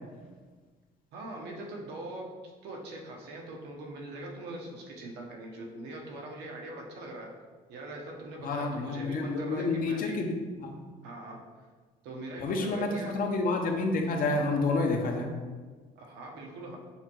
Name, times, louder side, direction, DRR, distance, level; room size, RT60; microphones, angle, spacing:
voice 1, 1.1-2.3 2.6-7.3 7.7-10.2 11.0-11.4 12.0-13.2 16.0-16.8, right 2 dB, 85° right, 0 dB, 0.8 m, -42 dB
voice 2, 8.4-10.7 12.4-15.3, left 3 dB, 55° left, 3 dB, 0.6 m, -29 dB
5.4 x 2.2 x 2.9 m, 1.4 s
cardioid pair, 110°, 17 cm